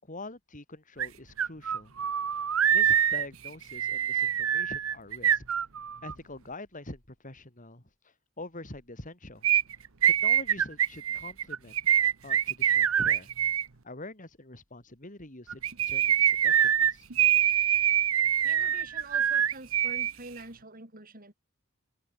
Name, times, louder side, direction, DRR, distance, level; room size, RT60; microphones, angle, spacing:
voice 1, 0.0-1.9 2.7-5.4 6.0-7.8 8.4-9.5 10.0-11.8 12.2-13.3 13.8-17.1, left 2 dB, 40° left, 4.8 m, -45 dB
sound 1, 1.0-1.1 1.4-6.1 9.4-13.6 15.5-20.1 20.4-20.5, right 9 dB, 75° right, 1.1 m, -25 dB
voice 2, 18.4-21.3, right 2 dB, 45° right, 7.4 m, -46 dB
open air
head